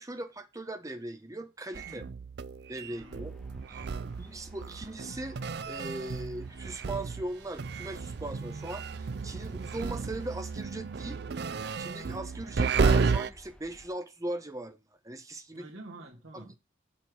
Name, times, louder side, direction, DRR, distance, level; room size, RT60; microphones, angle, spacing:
voice 1, 0.0-2.0 2.7-3.4 3.7-3.8 4.2-5.4 5.6-11.2 11.5-14.8 15.0-15.7 16.3-16.6, right 1 dB, 15° right, 1.0 m, -39 dB
sound 1, 1.7-7.3 7.6-13.3, right 5 dB, 55° right, 0.4 m, -32 dB
sound 2, 2.9-13.9, equal, 5° left, 1.4 m, -56 dB
voice 2, 2.9-3.3 3.7-4.2 15.5-16.6, right 2 dB, 75° right, 2.0 m, -49 dB
7.3 x 6.9 x 4.8 m
head